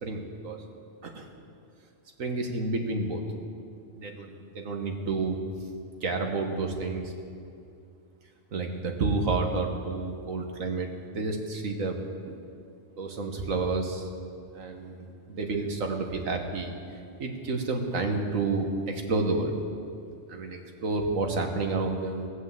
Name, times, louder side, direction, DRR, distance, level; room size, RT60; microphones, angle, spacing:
voice 1, 0.0-0.6 1.0-1.3 2.2-3.2 4.0-5.4 6.0-7.1 8.5-12.3 13.0-14.1 14.5-16.7 17.2-19.5 20.3-22.3, right 3 dB, 90° right, 3 dB, 1.7 m, -30 dB
18.0 x 6.5 x 7.6 m, 2.4 s
omnidirectional pair, 1.3 m